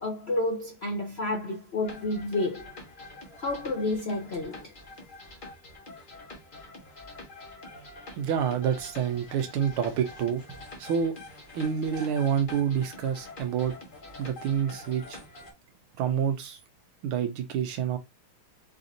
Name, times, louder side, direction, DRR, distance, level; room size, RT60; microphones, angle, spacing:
voice 1, 0.0-2.7 3.4-4.7, left 2 dB, 75° left, 0.5 m, -30 dB
sound 1, 1.8-15.5, left 2 dB, 30° left, 1.0 m, -46 dB
voice 2, 8.2-11.1 11.5-13.7 14.2-15.2 16.0-16.6 17.0-18.0, right 8 dB, 80° right, 1.6 m, -28 dB
5.0 x 2.7 x 3.8 m
omnidirectional pair, 2.4 m